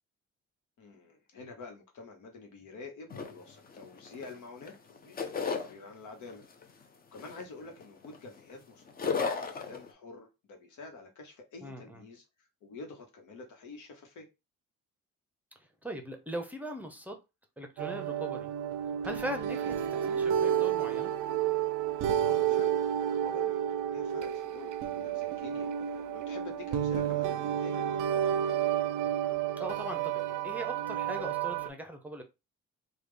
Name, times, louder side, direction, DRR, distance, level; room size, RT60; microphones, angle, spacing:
voice 1, 0.8-14.3 22.1-28.6, left 3 dB, 80° left, 1.1 m, -49 dB
sound 1, 3.1-4.4 4.6-5.7 6.3-6.6 7.2-8.5 8.8-9.9, left 5 dB, 30° left, 0.6 m, -34 dB
voice 2, 11.6-12.0 15.8-17.2 17.6-18.5 19.0-21.1 29.6-32.2, right 1 dB, 5° right, 0.7 m, -40 dB
sound 2, 17.8-31.7, right 10 dB, 85° right, 0.5 m, -31 dB
3.5 x 2.3 x 3.3 m
cardioid pair, 90°, 30 cm